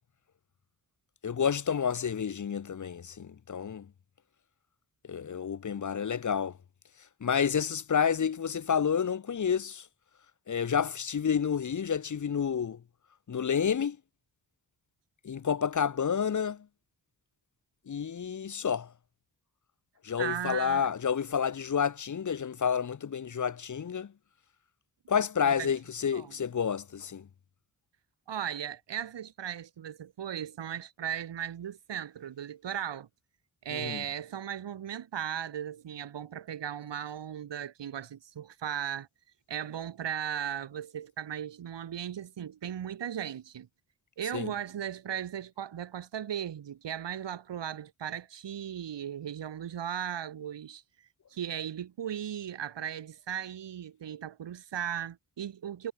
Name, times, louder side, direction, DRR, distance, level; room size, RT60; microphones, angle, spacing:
voice 1, 1.2-3.9 5.1-6.6 7.2-9.9 10.5-12.8 13.3-14.0 15.2-16.7 17.9-18.9 20.0-24.1 25.1-27.3 33.7-34.0 44.3-44.5, left 7 dB, 45° left, 0.9 m, -29 dB
voice 2, 20.2-20.9 25.5-25.7 26.1-26.4 28.3-33.1 33.6-39.1 39.5-43.7 44.2-50.8 51.3-55.9, right 9 dB, 80° right, 4.6 m, -37 dB
supercardioid pair, 45°, 42 cm